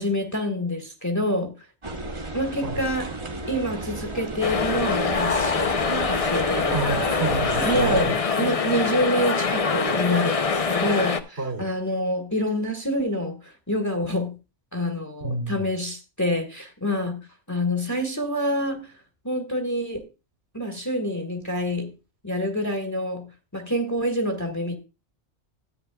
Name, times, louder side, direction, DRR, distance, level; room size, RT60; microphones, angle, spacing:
voice 1, 0.0-1.5 2.3-3.1 3.5-5.7 6.1-6.8 7.6-11.2 11.6-13.3 13.7-14.3 14.7-17.2 17.5-18.8 19.2-20.0 20.5-21.9 22.2-23.2 23.5-24.8, left 1 dB, 15° left, 1.4 m, -26 dB
sound 1, 1.8-8.0, right 2 dB, 25° right, 1.1 m, -33 dB
sound 2, 4.4-11.2, left 5 dB, 35° left, 0.7 m, -24 dB
voice 2, 6.7-8.1 8.4-8.5 11.4-11.6 15.2-15.6, right 3 dB, 65° right, 2.7 m, -29 dB
13.5 x 9.2 x 2.2 m
omnidirectional pair, 1.2 m